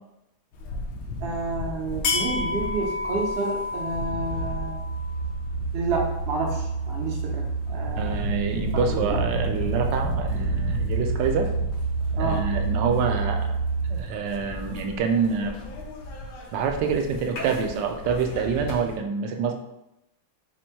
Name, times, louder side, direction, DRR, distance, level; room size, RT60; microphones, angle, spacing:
sound 1, 0.5-19.0, left 2 dB, 70° left, 1.2 m, -33 dB
voice 1, 1.2-4.8 5.7-8.1 8.9-9.2 12.2-12.5, right 3 dB, 60° right, -1 dB, 0.6 m, -30 dB
sound 2, 4.0-14.0, right 4 dB, 55° left, 0.9 m, -29 dB
voice 2, 8.0-11.5 12.1-13.5 13.9-15.5 16.5-19.5, right 6 dB, 75° right, 4 dB, 1.2 m, -26 dB
4.3 x 2.6 x 4.4 m, 0.87 s
omnidirectional pair, 2.1 m